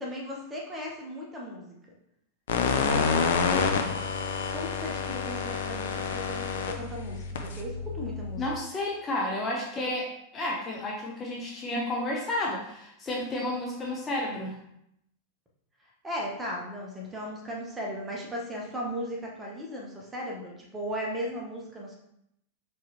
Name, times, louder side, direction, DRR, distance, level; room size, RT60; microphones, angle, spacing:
voice 1, 0.0-1.7 2.7-3.8 4.5-8.4 16.0-22.0, equal, 15° right, -2 dB, 1.0 m, -36 dB
sound 1, 2.5-8.5, left 5 dB, 60° left, 0.4 m, -28 dB
voice 2, 8.4-14.6, left 1 dB, 20° left, -2 dB, 0.7 m, -31 dB
4.4 x 3.1 x 2.8 m, 0.77 s
figure-of-eight pair, 90°, 0 cm